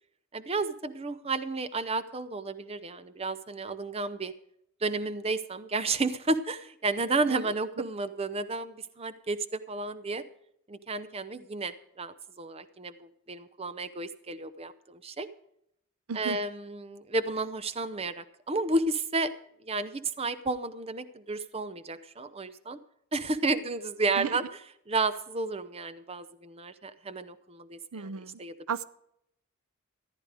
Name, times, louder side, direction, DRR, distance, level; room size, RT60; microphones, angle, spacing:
voice 1, 0.3-4.3 4.8-10.2 10.7-15.3 16.1-19.3 19.6-22.8 23.1-24.4 24.9-28.5, right 3 dB, 25° right, 13 dB, 0.7 m, -32 dB
voice 2, 16.1-16.4 24.2-24.4 27.9-28.4 28.7-28.8, right 6 dB, 80° right, 16 dB, 0.6 m, -34 dB
14.5 x 11.0 x 4.9 m, 0.73 s
head